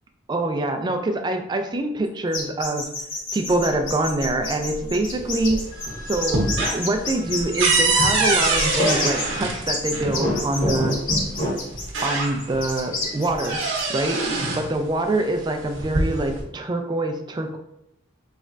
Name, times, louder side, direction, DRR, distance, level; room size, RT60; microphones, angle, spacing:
voice 1, 0.3-2.9 3.3-5.7 6.1-11.0 12.0-13.6 13.9-17.6, right 2 dB, 20° right, 5 dB, 0.3 m, -25 dB
sound 1, 2.3-7.8 8.2-9.3 9.7-13.8, left 3 dB, 65° left, 1.0 m, -29 dB
sound 2, 3.4-5.0 5.3-9.4 9.9-11.5, equal, 45° left, 1.4 m, -29 dB
sound 3, 5.2-5.8 6.1-10.1 11.2-11.3 11.7-12.7 13.0-14.7 15.6-16.4, right 3 dB, 65° right, 0.8 m, -24 dB
4.1 x 3.2 x 2.4 m, 0.80 s
head